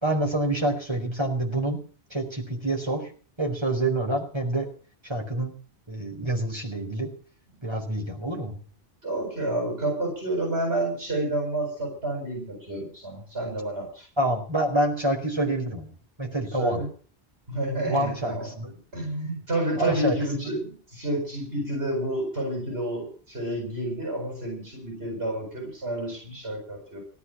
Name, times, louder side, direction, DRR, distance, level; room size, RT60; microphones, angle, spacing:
voice 1, 0.0-1.8 2.1-3.1 3.4-4.7 5.0-5.5 5.9-7.1 7.6-8.6 14.2-15.9 16.2-16.8 17.8-18.7 19.8-20.6, right 1 dB, 25° right, 1 dB, 4.9 m, -27 dB
voice 2, 9.0-14.1 16.6-16.9 17.5-18.5 18.9-27.0, right 1 dB, 75° right, 0 dB, 8.0 m, -29 dB
18.0 x 9.8 x 7.6 m, 0.42 s
omnidirectional pair, 1.1 m